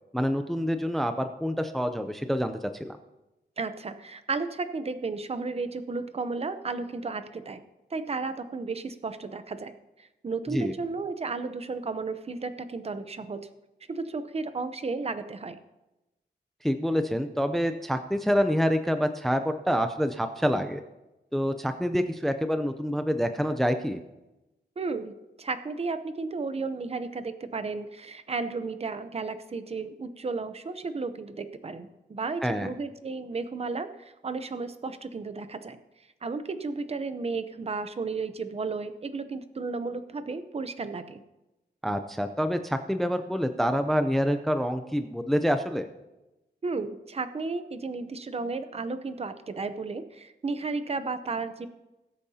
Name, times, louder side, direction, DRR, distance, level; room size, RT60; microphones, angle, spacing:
voice 1, 0.1-3.0 10.5-10.7 16.6-20.8 21.3-24.0 32.4-32.7 41.8-45.9, equal, ahead, 8 dB, 0.5 m, -27 dB
voice 2, 3.6-7.6 7.9-9.7 10.0-13.4 13.9-15.6 24.8-35.8 36.2-41.2 46.6-51.7, right 4 dB, 35° right, 10 dB, 0.7 m, -33 dB
20.5 x 8.5 x 2.8 m, 1.0 s
wide cardioid pair, 150°, 18 cm